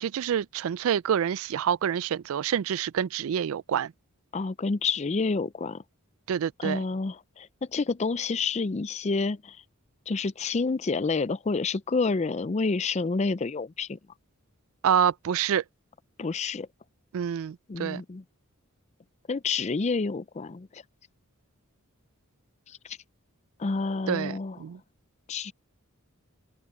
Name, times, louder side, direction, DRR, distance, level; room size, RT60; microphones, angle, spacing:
voice 1, 0.0-3.9 6.3-6.8 14.8-15.6 17.1-18.0 24.1-24.8, right 8 dB, 65° right, 0.3 m, -27 dB
voice 2, 4.3-5.8 6.6-9.6 10.1-14.0 16.2-16.7 17.7-18.2 19.3-20.8 22.7-23.0 23.6-24.6 25.3-25.5, left 4 dB, 30° left, 0.4 m, -29 dB
open air
head